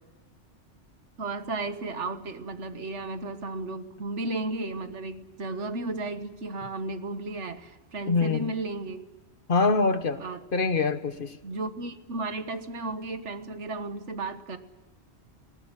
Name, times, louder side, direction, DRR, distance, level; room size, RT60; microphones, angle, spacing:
voice 1, 1.2-9.0 10.2-10.4 11.4-14.6, right 2 dB, 80° right, 9 dB, 1.7 m, -34 dB
voice 2, 8.1-8.5 9.5-10.2 10.5-11.4, left 4 dB, 50° left, 11 dB, 1.2 m, -24 dB
19.5 x 19.0 x 9.8 m, 1.2 s
omnidirectional pair, 1.2 m